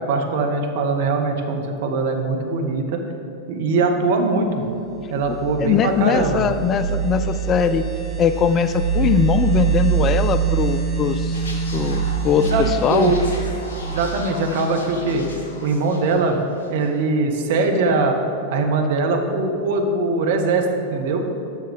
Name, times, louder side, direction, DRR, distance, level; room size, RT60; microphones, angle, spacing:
voice 1, 0.0-3.0 3.5-4.6 5.1-6.4 12.3-13.2 13.8-15.3 15.6-16.4 16.7-18.1 18.5-21.2, right 3 dB, 55° right, 4 dB, 0.9 m, -21 dB
sound 1, 4.9-15.4, right 8 dB, 10° left, 1.9 m, -25 dB
voice 2, 5.6-7.8 8.2-11.4 11.7-13.1, left 8 dB, 30° left, 11 dB, 0.3 m, -20 dB
sound 2, 11.3-17.0 17.3-17.6, left 2 dB, 65° left, 1.1 m, -38 dB
6.5 x 6.4 x 5.2 m, 2.9 s
figure-of-eight pair, 90°, 0 cm